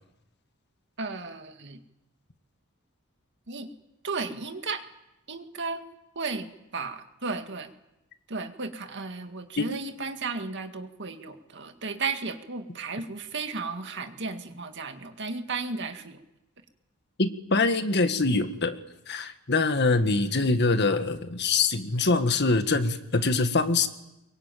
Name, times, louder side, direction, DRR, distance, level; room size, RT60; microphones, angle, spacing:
voice 1, 1.0-1.8 3.5-3.7 4.0-4.8 5.3-5.8 6.2-7.7 8.3-16.2, right 4 dB, 60° right, 7 dB, 2.1 m, -34 dB
voice 2, 17.2-18.8 19.1-23.9, left 3 dB, 55° left, 9 dB, 1.7 m, -24 dB
24.0 x 23.0 x 9.2 m, 0.93 s
head